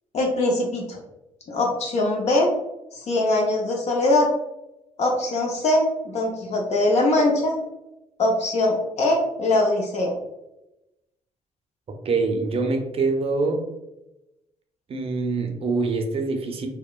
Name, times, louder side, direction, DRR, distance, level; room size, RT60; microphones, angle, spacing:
voice 1, 0.1-1.0 1.5-2.5 2.9-4.3 5.0-7.5 8.2-10.1, left 2 dB, 55° left, 0 dB, 0.5 m, -22 dB
voice 2, 12.0-13.6 14.9-16.7, right 3 dB, 45° right, 4 dB, 0.5 m, -24 dB
2.8 x 2.1 x 2.3 m, 0.94 s
supercardioid pair, 65°, 13 cm